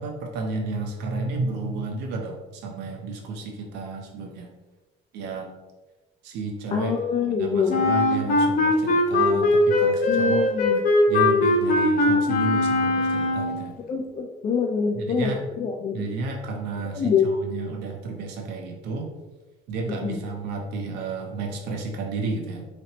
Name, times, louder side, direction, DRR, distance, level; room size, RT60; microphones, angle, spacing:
voice 1, 0.0-4.5 5.1-5.6 6.2-6.9 7.2-10.5 11.1-13.8 14.9-15.4 15.9-19.1 19.7-22.7, right 3 dB, 90° right, 1 dB, 0.7 m, -32 dB
voice 2, 6.7-7.8 9.2-9.4 10.1-10.8 13.9-15.3 15.6-16.1 16.9-17.3 19.9-20.2, left 6 dB, 35° left, 1 dB, 0.4 m, -25 dB
Wind instrument woodwind instrument, 7.7-13.6, left 2 dB, 55° left, 0.8 m, -20 dB
4.1 x 3.1 x 2.9 m, 1.2 s
cardioid pair, 110°, 17 cm